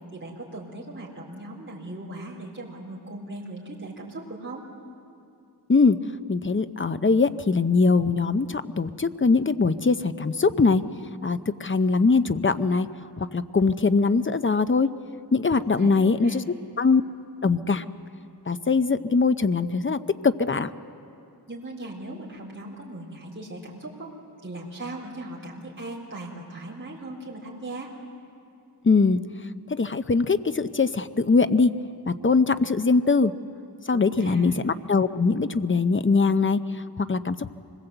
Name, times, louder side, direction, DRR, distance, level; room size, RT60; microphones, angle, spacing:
voice 1, 0.1-4.7 15.8-16.4 21.5-24.1 24.4-27.9 33.9-34.6, right 2 dB, 30° right, -5 dB, 4.1 m, -38 dB
voice 2, 6.3-10.8 11.2-12.9 13.2-14.9 15.3-16.4 16.8-17.0 17.4-17.8 18.5-20.7 28.8-29.2 29.7-31.7 32.1-33.3 33.9-37.5, left 4 dB, 30° left, 12 dB, 0.7 m, -22 dB
25.5 x 20.5 x 8.0 m, 2.5 s
wide cardioid pair, 85°, 41 cm